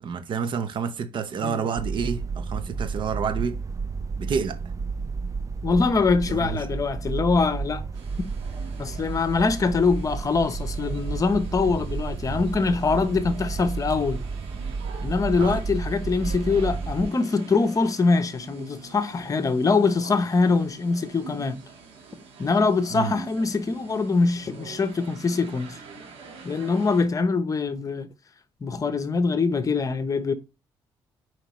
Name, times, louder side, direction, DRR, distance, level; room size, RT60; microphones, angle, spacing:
voice 1, 0.0-3.6 4.2-4.6 6.2-6.6 15.4-15.6 22.9-23.2, right 6 dB, 60° right, 1.0 m, -29 dB
sound 1, 1.8-17.1, right 4 dB, 35° right, 0.6 m, -32 dB
voice 2, 5.6-7.8 8.8-14.2 15.0-21.6 22.4-25.8 26.4-28.1 28.6-30.3, left 4 dB, 40° left, 1.0 m, -23 dB
sound 2, 7.9-27.1, right 5 dB, 85° right, 1.8 m, -45 dB
7.5 x 5.1 x 3.2 m
cardioid pair, 80°, 9 cm